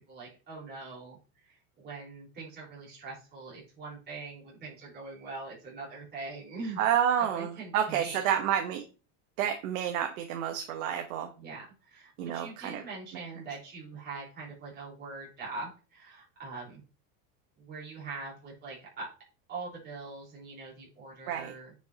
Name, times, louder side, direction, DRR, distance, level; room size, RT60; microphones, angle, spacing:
voice 1, 0.1-1.2 1.8-6.8 7.2-8.4 11.4-16.8 17.6-19.1 19.5-21.7, right 3 dB, 25° right, -5 dB, 4.3 m, -42 dB
voice 2, 6.8-8.8 9.4-11.3 12.2-12.8 21.3-21.5, right 9 dB, 85° right, 5 dB, 1.1 m, -29 dB
9.3 x 5.4 x 2.9 m, 0.33 s
cardioid pair, 165°, 40 cm